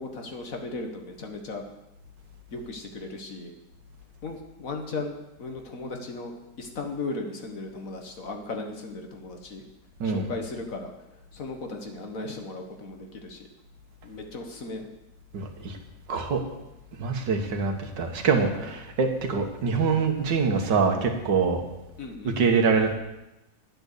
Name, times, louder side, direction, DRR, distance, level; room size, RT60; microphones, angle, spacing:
voice 1, 0.0-1.6 2.5-3.5 4.2-9.6 10.0-10.9 11.3-13.5 14.0-14.9 22.0-22.4, left 3 dB, 55° left, 4 dB, 1.7 m, -36 dB
voice 2, 15.3-15.8 16.1-16.4 17.0-21.6 22.2-23.0, right 5 dB, 90° right, 4 dB, 2.0 m, -24 dB
10.5 x 8.8 x 6.7 m, 0.96 s
omnidirectional pair, 1.9 m